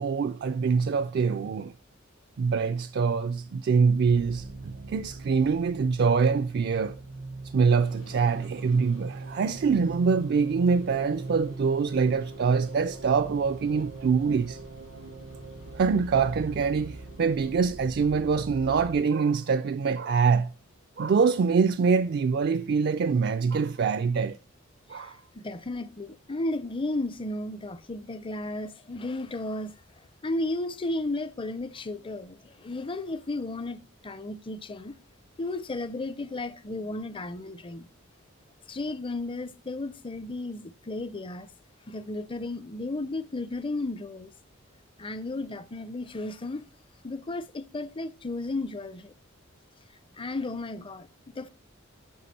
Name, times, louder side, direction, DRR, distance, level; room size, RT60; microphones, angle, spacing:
voice 1, 0.0-1.7 2.4-7.0 7.5-14.6 15.8-20.5 21.0-24.4 24.9-25.2, right 5 dB, 50° right, 0.3 m, -24 dB
sound 1, 4.0-19.0, right 3 dB, 80° right, 0.9 m, -41 dB
sound 2, 7.7-17.7, left 1 dB, 70° left, 4.1 m, -52 dB
voice 2, 24.9-29.7 30.2-35.0 35.4-37.8 38.7-41.5 41.9-44.3 45.0-46.6 47.0-49.1 50.2-51.5, left 2 dB, 25° left, 0.5 m, -34 dB
9.4 x 5.9 x 4.2 m
head